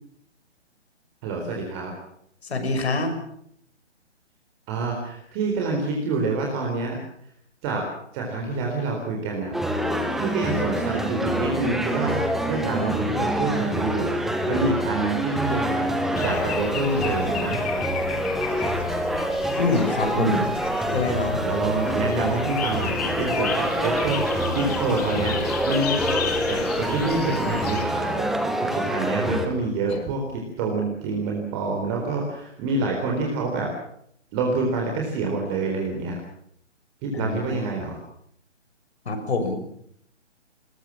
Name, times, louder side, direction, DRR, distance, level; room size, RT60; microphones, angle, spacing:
voice 1, 1.2-1.9 4.7-7.0 7.6-7.8 8.1-9.5 10.2-12.1 12.4-14.2 14.5-15.8 16.2-17.6 20.1-20.4 21.4-24.2 24.5-26.2 26.5-28.3 28.6-30.2 30.6-33.7 34.3-36.1 37.0-38.0, right 3 dB, 25° right, 0 dB, 4.1 m, -27 dB
voice 2, 2.4-3.1 19.6-20.5 20.9-21.4 37.1-37.6 39.1-39.6, left 3 dB, 60° left, 7 dB, 6.1 m, -25 dB
sound 1, 9.5-29.5, right 1 dB, ahead, 0.9 m, -26 dB
sound 2, 16.1-27.9, left 8 dB, 35° left, 2.6 m, -33 dB
21.0 x 21.0 x 7.4 m, 0.69 s
figure-of-eight pair, 145°, 36 cm